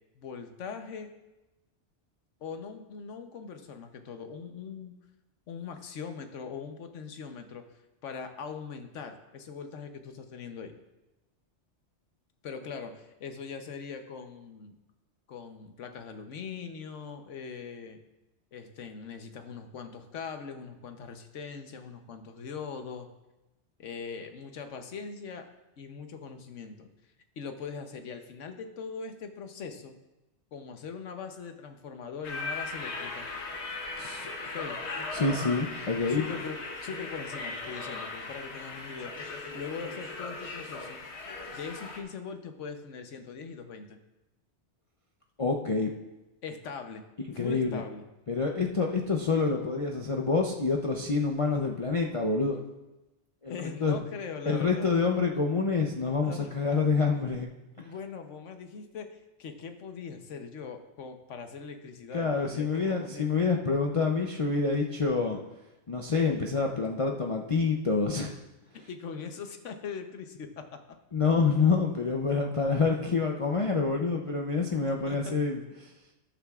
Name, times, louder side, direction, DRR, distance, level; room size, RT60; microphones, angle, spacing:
voice 1, 0.1-1.1 2.4-4.9 5.5-7.6 8.0-10.7 12.4-14.8 15.3-18.0 18.5-23.1 23.8-25.5 25.8-26.9 27.4-29.9 30.5-33.3 34.5-34.8 36.1-39.1 39.5-41.0 41.5-44.0 46.4-47.0 47.3-48.1 53.5-54.9 56.2-56.5 57.8-63.3 68.9-70.8 75.1-75.3, left 5 dB, 85° left, 7 dB, 1.2 m, -41 dB
sound 1, 32.2-42.0, left 3 dB, 65° left, 1.4 m, -38 dB
voice 2, 34.0-34.3 35.1-36.2 45.4-45.9 47.4-47.8 48.3-52.6 53.4-54.0 54.5-57.5 62.1-65.4 65.9-68.3 71.1-75.6, left 4 dB, 40° left, 0 dB, 0.5 m, -27 dB
14.0 x 9.9 x 2.4 m, 1.0 s
omnidirectional pair, 1.2 m